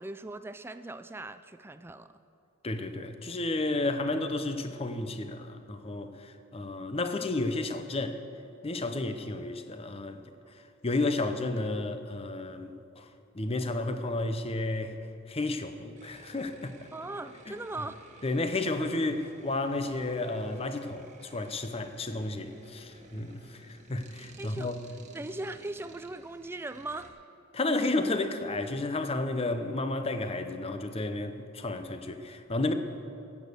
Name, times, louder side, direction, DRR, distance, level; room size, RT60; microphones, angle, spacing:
voice 1, 0.0-2.2 16.9-18.0 24.4-24.7 25.1-27.2, right 2 dB, 10° right, 0.3 m, -39 dB
voice 2, 2.6-8.2 8.6-10.2 10.5-13.1 13.3-15.0 15.3-16.7 17.5-17.6 18.2-24.8 27.5-32.7, left 2 dB, 30° left, 0.7 m, -32 dB
sound 1, 16.0-27.1, right 2 dB, 35° right, 1.3 m, -54 dB
16.0 x 8.2 x 6.7 m
head